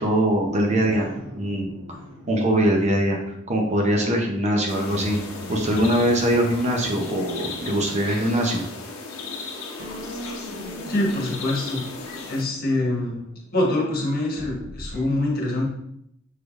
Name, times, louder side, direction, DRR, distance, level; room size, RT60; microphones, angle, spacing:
voice 1, 0.0-1.8 2.3-3.2 3.5-5.2 5.5-8.6, right 1 dB, 35° right, 1 dB, 0.7 m, -22 dB
sound 1, 0.7-4.4 4.9-9.4 9.8-15.0, equal, 60° right, 0.9 m, -40 dB
sound 2, 4.7-12.4, left 3 dB, 85° left, 0.8 m, -36 dB
voice 2, 10.9-11.8 12.3-13.2 13.5-15.7, left 1 dB, 45° left, -2 dB, 1.2 m, -24 dB
6.3 x 3.4 x 2.5 m, 0.75 s
head